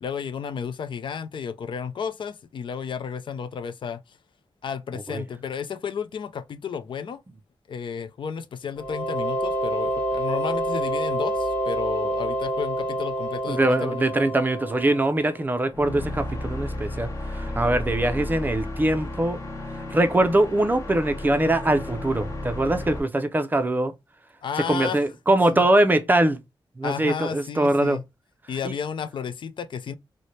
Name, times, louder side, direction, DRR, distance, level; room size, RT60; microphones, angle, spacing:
voice 1, 0.0-4.0 4.6-7.2 7.7-14.0 24.4-25.0 25.5-25.6 26.8-28.0 28.5-29.9, left 7 dB, 70° left, 0.4 m, -32 dB
sound 1, 8.8-15.4, right 1 dB, 15° left, 1.1 m, -28 dB
voice 2, 13.5-19.4 19.9-23.9 24.7-26.4 26.8-28.0 28.6-28.7, right 1 dB, 20° right, 0.4 m, -22 dB
sound 2, 15.7-23.0, left 1 dB, 35° left, 0.9 m, -33 dB
3.1 x 2.1 x 3.9 m
wide cardioid pair, 160°, 9 cm